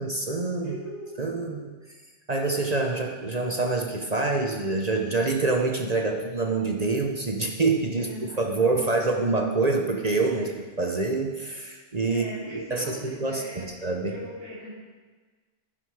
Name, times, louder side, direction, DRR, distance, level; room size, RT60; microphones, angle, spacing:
voice 1, 0.0-0.8 1.2-1.7 2.3-8.1 8.4-10.5 10.8-14.2, right 3 dB, 35° right, 2 dB, 0.9 m, -26 dB
voice 2, 0.6-1.5 8.0-9.6 10.3-10.4 12.1-13.6 14.1-14.7, right 1 dB, 15° right, -12 dB, 3.9 m, -40 dB
11.0 x 10.5 x 4.8 m, 1.4 s
omnidirectional pair, 1.3 m